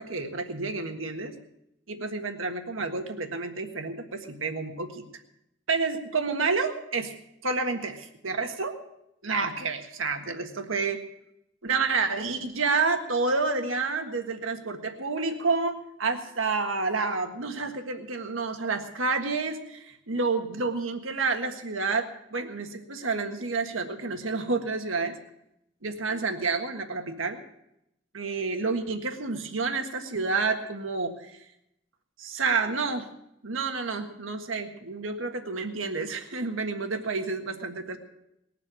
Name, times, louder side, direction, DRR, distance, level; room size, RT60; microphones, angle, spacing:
voice 1, 0.0-1.3 1.9-5.0 5.7-7.1 7.4-8.7 9.2-11.0 11.6-25.2 25.8-27.4 28.1-31.4 32.2-33.1 33.4-38.0, right 4 dB, 90° right, 6 dB, 1.6 m, -29 dB
20.0 x 7.7 x 7.5 m, 0.81 s
head